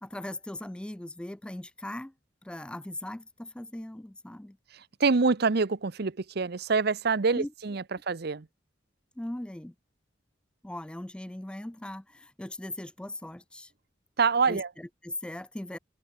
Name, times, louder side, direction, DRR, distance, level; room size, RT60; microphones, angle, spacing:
voice 1, 0.0-2.1 2.4-4.6 7.4-7.5 9.2-9.7 10.6-13.7 14.5-15.8, left 1 dB, 5° left, 0.3 m, -39 dB
voice 2, 4.7-8.5 14.2-14.7, right 4 dB, 55° right, 0.7 m, -26 dB
open air
head